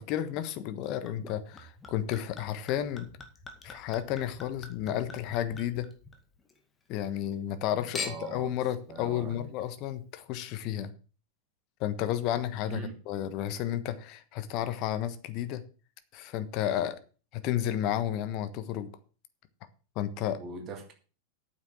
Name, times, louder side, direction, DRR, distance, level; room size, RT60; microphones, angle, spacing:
voice 1, 0.0-3.1 3.6-5.9 6.9-10.9 11.8-15.6 16.1-17.0 17.3-18.9 19.9-20.4, left 11 dB, 40° left, 11 dB, 1.3 m, -32 dB
Chink clink / Liquid, 1.1-6.6 6.9-7.6 7.9-8.5 9.2-9.3, left 4 dB, 15° left, 2.1 m, -44 dB
voice 2, 7.7-8.5 8.9-9.5 12.6-13.0 20.4-20.9, right 4 dB, 30° right, 4 dB, 2.7 m, -41 dB
9.0 x 7.3 x 7.4 m, 0.37 s
figure-of-eight pair, 90°, 0 cm